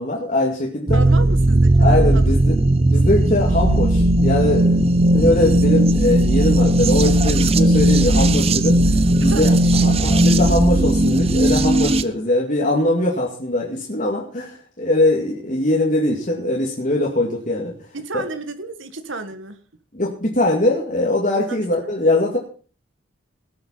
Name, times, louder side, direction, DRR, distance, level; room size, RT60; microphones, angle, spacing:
voice 1, 0.0-1.0 1.8-2.6 2.9-17.7 18.1-18.2 19.9-22.4, left 1 dB, 40° left, -2 dB, 2.2 m, -21 dB
sound 1, 0.9-12.0, right 1 dB, 30° right, 0.7 m, -16 dB
voice 2, 0.9-2.4 9.2-9.8 17.9-19.6 21.5-21.7, right 3 dB, 80° right, 9 dB, 1.7 m, -32 dB
18.5 x 7.8 x 5.6 m, 0.41 s
head